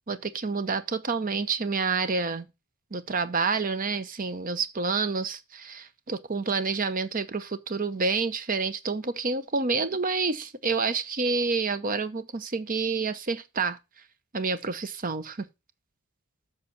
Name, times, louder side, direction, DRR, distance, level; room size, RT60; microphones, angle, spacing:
voice 1, 0.1-2.5 2.9-13.8 14.3-15.5, right 4 dB, 35° right, 0.7 m, -28 dB
7.8 x 5.8 x 5.8 m
head